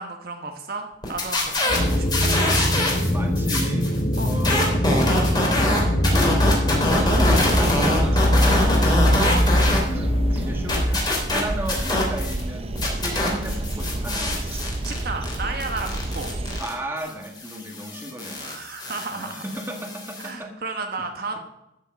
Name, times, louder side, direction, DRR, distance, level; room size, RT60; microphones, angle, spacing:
voice 1, 0.0-2.0 4.2-4.3 5.0-5.3 9.1-9.4 14.8-16.3 18.4-19.4 20.2-21.4, right 3 dB, 55° right, 4 dB, 1.2 m, -32 dB
sound 1, 1.0-3.1 3.3-9.8 10.1-12.4 12.7-20.3, left 1 dB, 25° left, 3.4 m, -25 dB
sound 2, 1.7-11.0, equal, 45° left, 1.2 m, -22 dB
voice 2, 1.7-2.0 3.1-4.8 6.1-9.1 9.8-14.3 16.6-18.6 19.1-21.0 21.3-21.4, right 1 dB, 10° right, 2 dB, 1.7 m, -35 dB
sound 3, 6.9-16.6, right 1 dB, 30° right, 0.6 m, -30 dB
13.5 x 6.7 x 6.4 m, 0.86 s
head